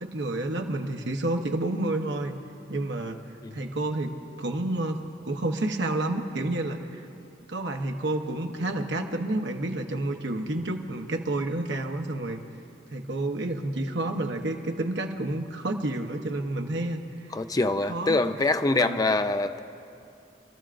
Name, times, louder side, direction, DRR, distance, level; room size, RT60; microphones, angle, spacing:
voice 1, 0.0-2.4 2.7-3.2 3.5-7.1 7.5-12.4 12.9-17.0 17.9-18.2 18.8-19.0, right 2 dB, 80° right, 3 dB, 1.0 m, -29 dB
voice 2, 17.3-19.6, left 2 dB, 20° left, 10 dB, 0.4 m, -25 dB
27.0 x 13.5 x 2.5 m, 2.6 s
head